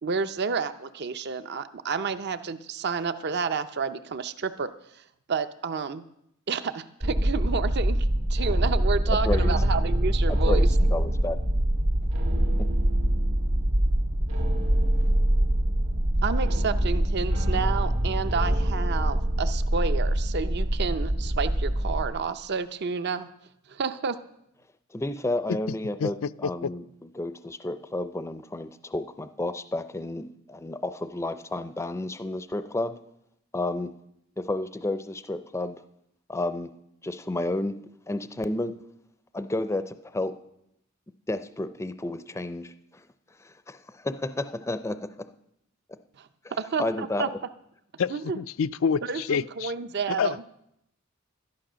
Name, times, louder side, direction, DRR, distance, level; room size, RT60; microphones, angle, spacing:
voice 1, 0.0-4.7 5.0-5.1 5.3-6.0 6.5-10.7 16.2-23.3 23.7-24.2 46.2-47.3 48.1-48.4 49.1-50.4, right 5 dB, 55° right, 0.6 m, -30 dB
sound 1, 7.0-22.1, right 1 dB, 80° right, 1.9 m, -24 dB
voice 2, 9.2-9.6 10.3-11.4 12.6-12.7 24.9-26.8 27.2-33.0 33.5-33.9 34.4-35.8 36.3-36.7 37.0-37.7 38.1-38.7 39.3-40.3 41.3-42.7 43.4-45.1 46.4-46.5 46.8-47.3, left 2 dB, 15° left, 0.5 m, -31 dB
voice 3, 26.0-26.7 48.0-49.7 50.2-50.5, left 6 dB, 75° left, 0.4 m, -28 dB
12.5 x 11.5 x 6.2 m
head